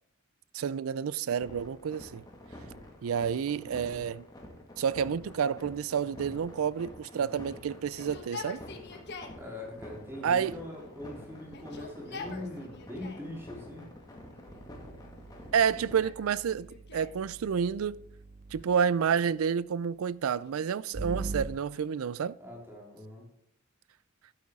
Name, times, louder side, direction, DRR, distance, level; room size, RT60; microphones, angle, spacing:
voice 1, 0.5-2.2 3.0-4.2 4.8-8.6 10.2-10.6 15.5-18.0 18.5-22.4, right 7 dB, 85° right, 0.4 m, -29 dB
sound 1, 1.4-15.9, left 1 dB, 20° left, 1.9 m, -48 dB
Yell, 7.0-9.4 10.3-11.1 11.4-13.3 14.1-14.7 15.4-17.2 18.6-19.5 20.3-22.0, left 4 dB, 55° left, 1.3 m, -47 dB
voice 2, 9.3-13.9 22.4-23.3, left 1 dB, 10° right, 3.0 m, -42 dB
sound 2, 14.5-18.8 20.9-21.5, right 3 dB, 40° right, 0.7 m, -42 dB
12.0 x 8.6 x 3.7 m
head